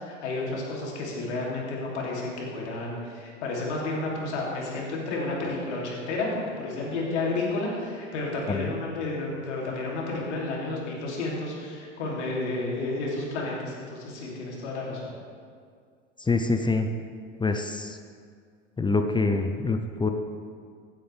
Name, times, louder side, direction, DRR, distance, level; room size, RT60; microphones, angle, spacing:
voice 1, 0.0-15.1, left 2 dB, 70° left, -3 dB, 3.0 m, -31 dB
voice 2, 16.3-16.9 17.4-18.0 18.8-20.1, left 3 dB, 15° left, 6 dB, 0.7 m, -25 dB
15.5 x 9.0 x 3.5 m, 2.1 s
figure-of-eight pair, 75°, 36 cm